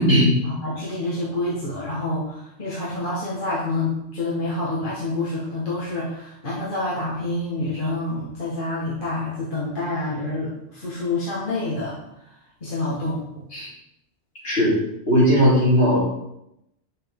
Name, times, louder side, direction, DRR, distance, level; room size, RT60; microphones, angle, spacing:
voice 1, 0.4-13.2, left 2 dB, 45° left, -7 dB, 1.7 m, -28 dB
voice 2, 14.4-14.8 15.1-16.0, equal, 60° left, -8 dB, 3.8 m, -17 dB
8.5 x 6.7 x 3.7 m, 0.82 s
omnidirectional pair, 1.3 m